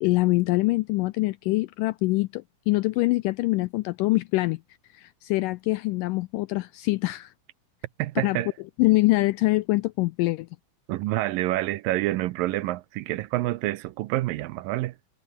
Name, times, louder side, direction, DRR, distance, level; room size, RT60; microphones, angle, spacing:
voice 1, 0.0-4.6 4.9-7.3 8.2-8.4 8.8-10.5, left 20 dB, 85° left, 1.9 m, -24 dB
voice 2, 8.0-8.5 10.9-15.0, right 17 dB, 75° right, 2.3 m, -27 dB
omnidirectional pair, 4.3 m